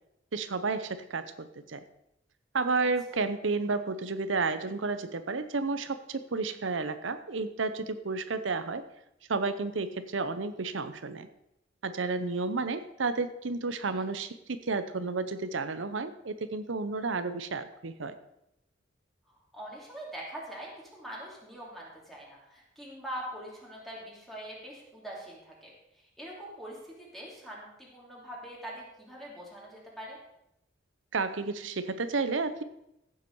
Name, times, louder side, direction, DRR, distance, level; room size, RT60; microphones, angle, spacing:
voice 1, 0.3-1.8 2.5-8.8 9.3-11.3 11.8-18.1 31.1-32.6, right 4 dB, 90° right, 11 dB, 0.8 m, -31 dB
voice 2, 19.5-30.2, right 1 dB, ahead, -4 dB, 2.8 m, -43 dB
15.0 x 7.4 x 4.7 m, 0.83 s
head